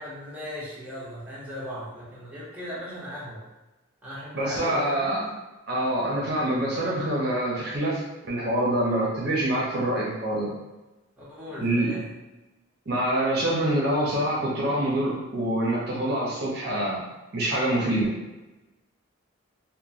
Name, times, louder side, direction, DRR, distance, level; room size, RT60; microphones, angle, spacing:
voice 1, 0.0-3.4 4.0-5.4 11.2-12.1, equal, 5° right, -9 dB, 0.7 m, -38 dB
voice 2, 4.3-5.2 5.7-10.5 11.6-11.9 12.9-17.0 17.3-18.1, right 1 dB, 50° right, -5 dB, 0.6 m, -25 dB
2.9 x 2.1 x 2.4 m, 1.1 s
head